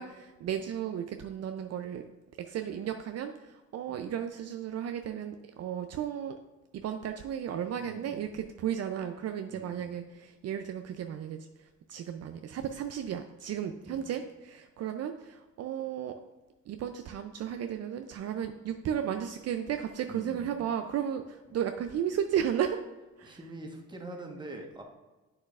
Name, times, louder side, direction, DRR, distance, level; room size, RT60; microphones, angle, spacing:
voice 1, 0.0-2.0 2.4-6.4 6.7-16.2 16.7-22.8 23.2-23.4, right 9 dB, 55° right, 6 dB, 0.5 m, -34 dB
voice 2, 7.8-8.4 9.5-9.9 13.9-14.1 20.1-20.6 23.2-24.8, right 1 dB, 15° right, 1 dB, 1.1 m, -45 dB
7.8 x 6.4 x 2.4 m, 1.2 s
cardioid pair, 90°, 30 cm